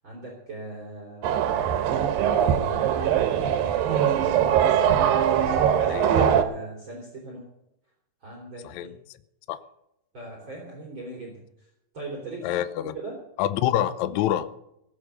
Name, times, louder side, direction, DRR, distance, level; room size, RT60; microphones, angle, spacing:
voice 1, 0.0-1.9 2.3-3.1 3.5-5.0 5.5-7.5 8.2-8.9 10.1-11.7 11.9-13.2, right 2 dB, 35° right, -2 dB, 3.7 m, -40 dB
sound 1, 1.2-6.4, right 9 dB, 75° right, 2.7 m, -22 dB
voice 2, 12.4-12.9 13.4-14.5, left 12 dB, 80° left, 13 dB, 1.6 m, -26 dB
19.0 x 8.2 x 6.7 m, 0.82 s
omnidirectional pair, 4.3 m